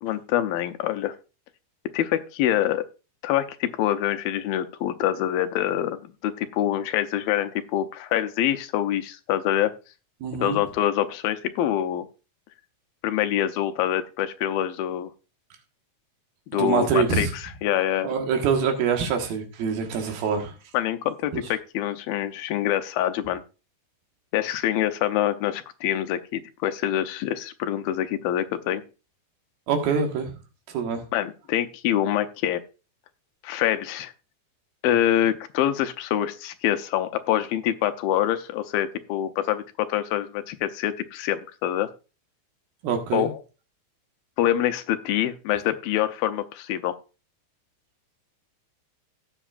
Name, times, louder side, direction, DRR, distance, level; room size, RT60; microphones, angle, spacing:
voice 1, 0.0-1.1 1.9-2.8 3.2-9.7 10.4-12.1 13.0-15.1 16.5-18.1 20.7-23.4 24.3-28.8 31.1-32.6 33.4-34.1 34.8-41.9 43.1-43.4 44.4-47.0, left 12 dB, 85° left, 9 dB, 2.6 m, -25 dB
voice 2, 10.2-10.6 16.5-17.3 18.0-20.5 21.3-21.4 29.7-30.4 30.7-31.0 42.8-43.3, right 6 dB, 85° right, 4 dB, 3.5 m, -25 dB
17.5 x 7.1 x 2.5 m, 0.32 s
omnidirectional pair, 4.1 m